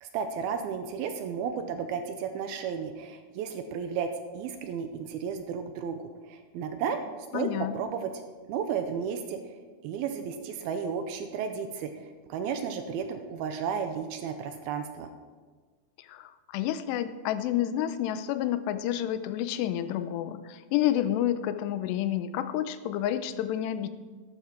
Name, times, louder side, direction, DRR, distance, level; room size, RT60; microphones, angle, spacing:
voice 1, 0.0-4.1 4.3-7.0 7.3-7.5 7.7-8.1 8.5-9.4 9.8-15.1, right 7 dB, 80° right, 7 dB, 2.4 m, -33 dB
voice 2, 7.3-7.7 16.1-23.9, left 11 dB, 90° left, 11 dB, 2.8 m, -29 dB
12.5 x 12.0 x 4.4 m, 1.5 s
omnidirectional pair, 4.8 m